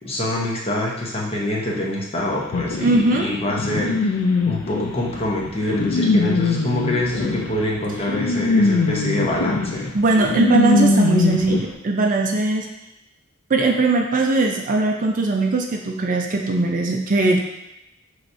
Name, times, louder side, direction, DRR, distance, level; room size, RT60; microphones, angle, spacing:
voice 1, 0.0-4.1 4.4-9.9, left 1 dB, 30° left, -3 dB, 0.8 m, -25 dB
sound 1, 2.5-11.6, left 3 dB, 85° left, 0.4 m, -22 dB
voice 2, 2.8-3.3 9.9-12.7 13.5-17.4, right 2 dB, 40° right, 2 dB, 0.4 m, -20 dB
5.7 x 3.1 x 2.6 m, 0.87 s
head